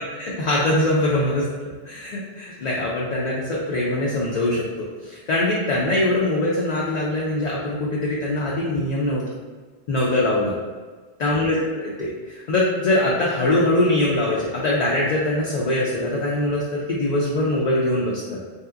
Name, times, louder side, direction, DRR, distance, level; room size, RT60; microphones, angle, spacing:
voice 1, 0.2-9.2 9.9-10.5 11.2-18.4, left 1 dB, 55° left, -5 dB, 0.5 m, -22 dB
3.3 x 2.8 x 2.4 m, 1.4 s
omnidirectional pair, 1.1 m